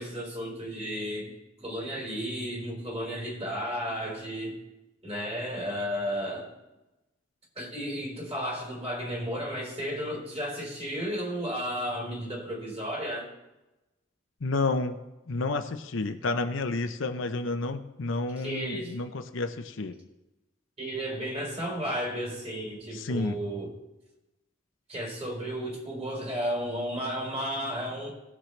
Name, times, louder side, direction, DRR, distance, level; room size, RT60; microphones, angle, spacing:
voice 1, 0.0-1.3 1.6-4.6 5.0-6.5 7.6-13.3 18.4-19.0 20.8-23.7 24.9-28.1, equal, 30° right, -3 dB, 4.1 m, -33 dB
voice 2, 14.4-15.0 15.3-20.0 22.9-23.4, left 3 dB, 65° left, 7 dB, 0.7 m, -30 dB
19.0 x 7.4 x 3.3 m, 1.0 s
head